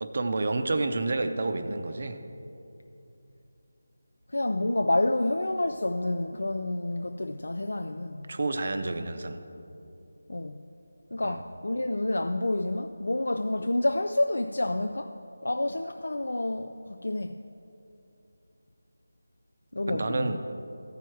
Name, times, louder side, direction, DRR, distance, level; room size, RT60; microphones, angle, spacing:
voice 1, 0.0-2.2 8.3-9.4 11.2-11.4 19.9-20.4, right 2 dB, 45° right, 7 dB, 0.6 m, -29 dB
voice 2, 4.3-8.3 10.3-10.6 11.1-15.2 15.4-17.4 19.7-20.4, left 1 dB, 85° left, 6 dB, 0.4 m, -29 dB
14.5 x 4.8 x 4.6 m, 2.8 s
figure-of-eight pair, 175°, 0 cm